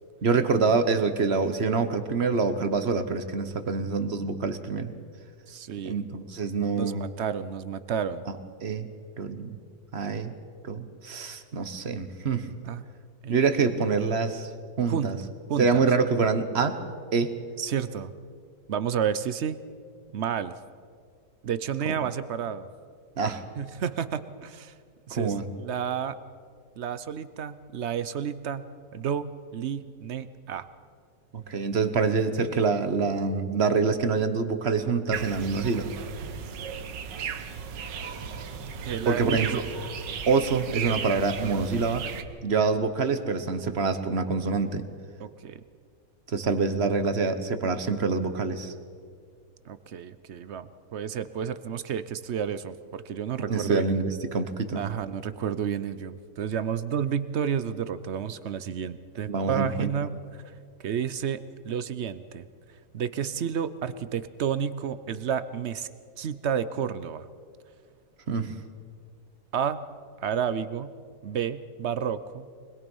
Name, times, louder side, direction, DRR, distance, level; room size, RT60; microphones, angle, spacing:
voice 1, 0.2-4.9 5.8-7.1 8.6-8.9 9.2-9.6 9.9-10.3 10.6-12.5 13.3-14.5 14.8-15.2 15.6-16.8 17.1-17.3 23.2-23.4 25.1-25.5 31.3-35.9 39.0-39.6 40.3-42.1 42.4-44.8 46.3-48.7 53.5-54.9 59.3-59.9 68.3-68.5, right 4 dB, 40° right, 10 dB, 1.2 m, -26 dB
voice 2, 5.5-6.0 6.8-8.2 12.7-12.8 13.2-13.4 14.9-15.1 15.5-15.9 17.6-18.1 18.7-19.6 20.1-20.5 21.4-22.7 23.6-24.7 25.1-26.2 26.8-30.6 38.8-39.5 45.2-45.6 49.7-53.8 54.8-60.2 60.4-60.5 60.8-61.4 61.6-62.5 62.9-65.9 66.2-67.3 69.5-69.8 70.2-70.9 71.2-72.5, right 8 dB, 55° right, 13 dB, 0.7 m, -31 dB
sound 1, 35.1-42.2, right 6 dB, 85° right, 1.7 m, -35 dB
24.5 x 21.0 x 5.4 m, 2.1 s
omnidirectional pair, 1.9 m